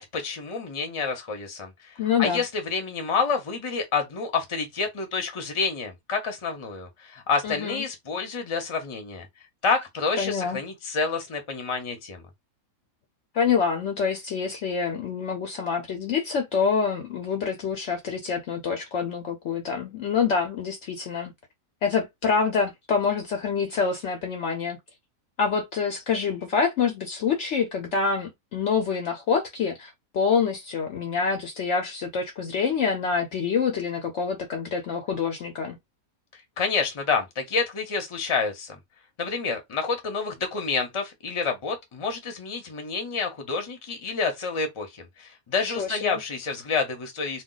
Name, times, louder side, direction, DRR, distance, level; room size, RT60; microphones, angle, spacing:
voice 1, 0.0-1.9 2.2-9.2 9.6-12.2 36.6-38.8 39.2-47.4, left 4 dB, 30° left, 0.6 m, -28 dB
voice 2, 2.0-2.4 7.4-7.8 10.2-10.6 13.3-21.3 21.8-24.8 25.4-35.8 45.8-46.2, left 6 dB, 65° left, 0.8 m, -26 dB
2.3 x 2.3 x 3.8 m
omnidirectional pair, 1.5 m